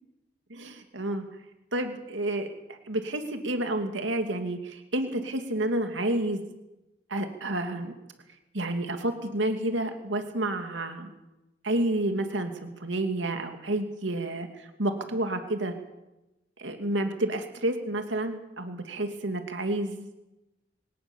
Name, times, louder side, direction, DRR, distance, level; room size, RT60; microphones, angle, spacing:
voice 1, 0.5-1.3 1.7-6.4 7.1-7.9 8.5-11.1 11.6-15.7 16.6-20.1, right 1 dB, 85° right, 6 dB, 2.5 m, -30 dB
24.5 x 18.0 x 7.1 m, 0.95 s
head